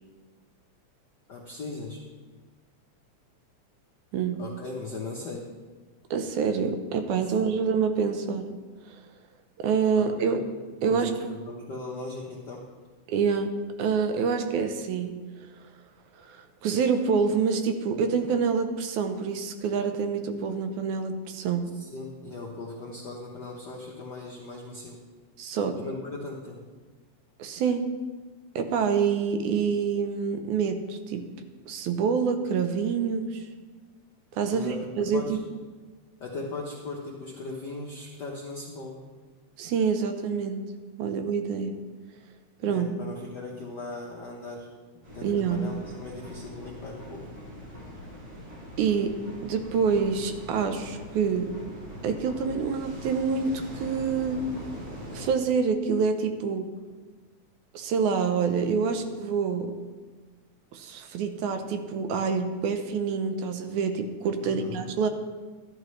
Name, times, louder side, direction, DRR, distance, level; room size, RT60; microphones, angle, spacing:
voice 1, 1.3-2.0 4.4-5.4 7.2-7.3 10.0-10.4 10.8-12.6 21.7-25.0 25.8-26.6 34.5-34.8 35.1-35.4 36.2-39.0 42.6-44.7 45.1-47.3 64.4-64.9, left 3 dB, 70° left, -2 dB, 1.0 m, -38 dB
voice 2, 6.1-8.5 8.9-9.0 9.6-10.4 10.8-11.2 13.1-13.5 13.8-15.2 16.3-16.4 16.6-21.7 25.4-25.8 27.4-27.9 28.6-31.3 31.7-33.4 34.3-35.4 39.6-40.6 41.0-41.7 42.6-42.9 45.2-45.7 48.8-49.2 49.4-51.5 52.0-54.4 55.1-56.7 57.7-59.7 60.7-65.1, right 6 dB, 80° right, 7 dB, 2.2 m, -26 dB
sound 1, 45.0-55.3, equal, 60° right, 4.8 m, -42 dB
13.0 x 11.0 x 3.2 m, 1.4 s
omnidirectional pair, 3.4 m